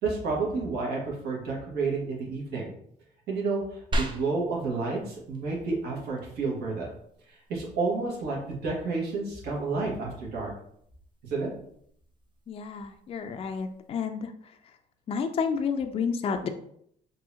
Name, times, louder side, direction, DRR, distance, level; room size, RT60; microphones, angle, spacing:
voice 1, 0.0-2.7 3.3-6.9 7.3-10.5 11.2-11.5, right 3 dB, 75° right, -3 dB, 1.6 m, -30 dB
sound 1, 3.9-13.9, right 1 dB, 30° right, 0.6 m, -41 dB
voice 2, 12.5-14.3 15.1-16.5, left 6 dB, 35° left, 6 dB, 0.4 m, -30 dB
5.4 x 2.8 x 2.8 m, 0.68 s
cardioid pair, 110°, 17 cm